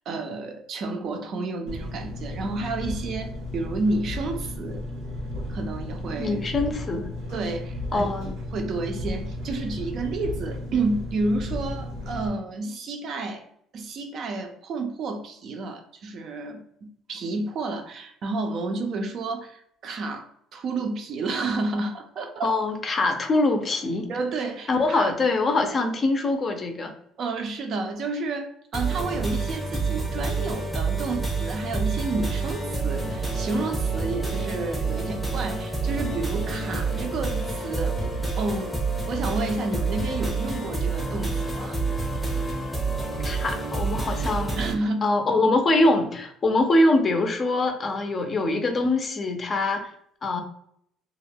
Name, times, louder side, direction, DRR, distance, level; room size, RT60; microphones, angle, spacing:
voice 1, 0.1-4.9 5.5-6.3 7.3-8.1 8.5-13.4 13.7-22.6 24.1-25.1 27.2-38.8 39.1-41.8 44.6-45.1, right 3 dB, 55° right, 5 dB, 0.4 m, -30 dB
Engine, 1.7-12.3, left 1 dB, 85° right, 0.8 m, -34 dB
sound 1, 3.1-10.5, equal, 90° left, 0.5 m, -47 dB
voice 2, 6.2-7.1 7.9-8.3 22.4-24.1 24.7-26.9 43.2-44.6 45.0-49.9 50.2-50.4, left 2 dB, 35° left, 6 dB, 0.4 m, -23 dB
sound 2, 28.7-44.7, right 3 dB, ahead, 0.7 m, -28 dB
2.3 x 2.1 x 3.3 m, 0.70 s
cardioid pair, 110°, 0 cm